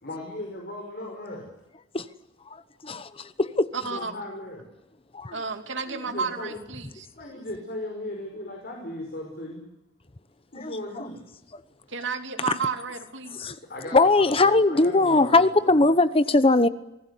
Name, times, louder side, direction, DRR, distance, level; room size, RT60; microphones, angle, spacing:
voice 1, 0.0-1.5 3.8-4.7 5.9-6.6 7.1-9.6 10.5-11.4 13.7-15.9, left 1 dB, 50° left, 2 dB, 5.5 m, -37 dB
voice 2, 2.8-3.7 5.1-5.3 10.6-10.7 13.4-13.5 13.9-16.7, left 2 dB, 30° left, 14 dB, 0.9 m, -20 dB
voice 3, 3.7-4.2 5.3-7.1 11.9-13.4, right 5 dB, 70° right, 6 dB, 2.9 m, -32 dB
27.0 x 19.5 x 8.4 m, 0.89 s
head